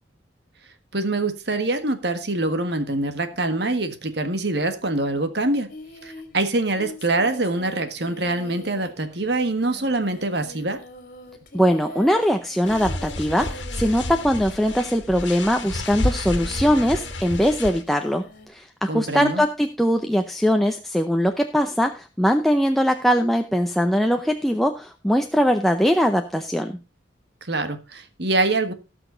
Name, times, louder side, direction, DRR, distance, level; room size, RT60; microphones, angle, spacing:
voice 1, 0.9-5.7 6.0-10.8 18.9-19.4 27.5-28.7, right 2 dB, 60° right, 8 dB, 1.6 m, -24 dB
Singing, 5.7-15.1 15.5-18.5, left 1 dB, 45° left, 2.5 m, -43 dB
voice 2, 11.5-26.8, equal, ahead, 4 dB, 0.6 m, -21 dB
sound 1, 12.6-17.8, left 1 dB, 70° left, 1.7 m, -30 dB
17.5 x 6.1 x 3.9 m, 0.30 s
head